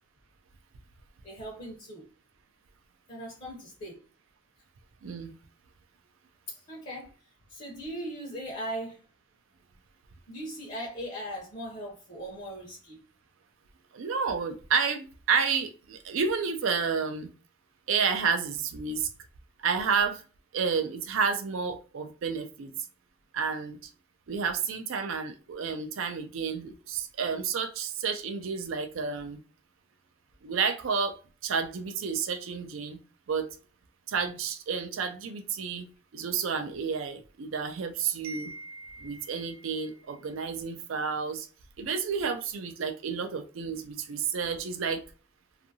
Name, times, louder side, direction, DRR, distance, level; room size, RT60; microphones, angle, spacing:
voice 1, 1.2-2.1 3.1-4.0 6.5-7.1 7.5-9.0 10.3-13.0, equal, 35° left, 0.7 m, -39 dB
voice 2, 5.0-5.4 13.9-17.3 17.9-19.1 19.6-20.2 20.5-22.7 23.3-23.8 24.3-29.4 30.4-31.2 31.4-33.0 33.3-33.5 34.1-35.9 36.1-41.5 41.8-45.0, right 5 dB, 70° right, 0.4 m, -30 dB
2.6 x 2.4 x 2.6 m
head